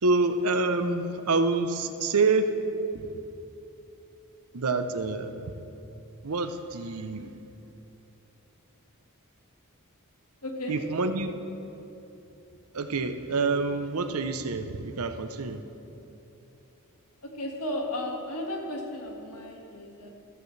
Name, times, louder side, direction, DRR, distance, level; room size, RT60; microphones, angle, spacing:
voice 1, 0.0-2.5 2.9-3.1 4.5-5.5 6.2-7.3 10.7-11.3 12.7-15.6, right 3 dB, 75° right, 8 dB, 0.7 m, -27 dB
voice 2, 10.4-10.8 17.3-20.1, left 1 dB, 85° left, 0 dB, 1.8 m, -34 dB
14.5 x 14.0 x 3.3 m, 3.0 s
head